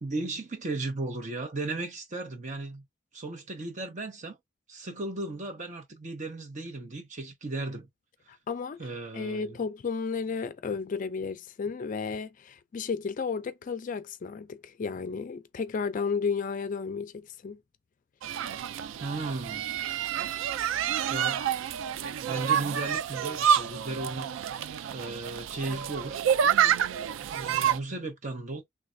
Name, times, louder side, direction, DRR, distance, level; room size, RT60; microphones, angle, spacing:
voice 1, 0.0-2.8 3.1-4.4 4.7-7.9 8.8-9.6 19.0-19.7 21.1-21.4 22.2-24.3 24.9-26.2 27.3-28.6, right 2 dB, 40° right, 0.8 m, -35 dB
voice 2, 8.3-17.6, left 5 dB, 45° left, 0.4 m, -33 dB
sound 1, 18.2-27.8, right 8 dB, 85° right, 0.3 m, -28 dB
3.2 x 2.2 x 2.5 m
head